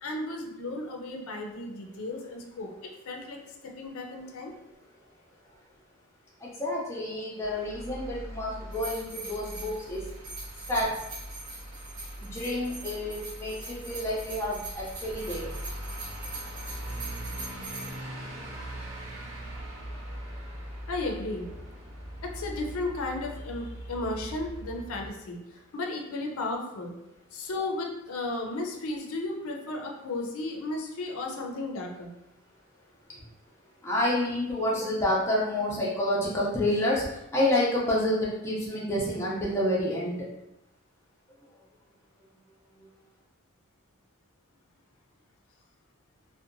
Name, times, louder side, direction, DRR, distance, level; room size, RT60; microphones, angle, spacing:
voice 1, 0.0-3.4 3.6-4.5 20.9-21.5 22.2-25.4 25.7-26.9 27.3-32.1, left 2 dB, 80° left, 1 dB, 0.4 m, -34 dB
voice 2, 6.4-10.0 10.7-10.9 12.2-15.5 33.1-33.3 33.8-40.3 42.7-42.9, left 1 dB, 10° left, -5 dB, 0.4 m, -29 dB
Truck / Idling, 7.4-25.1, right 1 dB, 70° right, 0.6 m, -41 dB
sound 1, 8.7-17.9, right 3 dB, 20° right, 0.8 m, -42 dB
2.7 x 2.1 x 2.5 m, 0.88 s
head